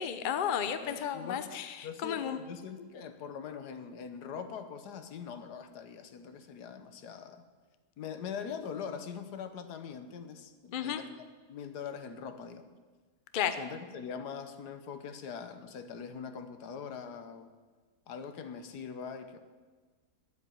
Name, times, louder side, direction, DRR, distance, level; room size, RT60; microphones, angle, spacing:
voice 1, 0.0-2.4 10.7-11.0 13.3-13.6, left 9 dB, 45° left, 9 dB, 0.7 m, -33 dB
voice 2, 0.8-1.5 1.8-7.4 8.0-12.7 13.6-17.5 18.1-19.4, left 6 dB, 85° left, 9 dB, 1.5 m, -42 dB
10.5 x 8.2 x 8.6 m, 1.4 s
omnidirectional pair, 1.7 m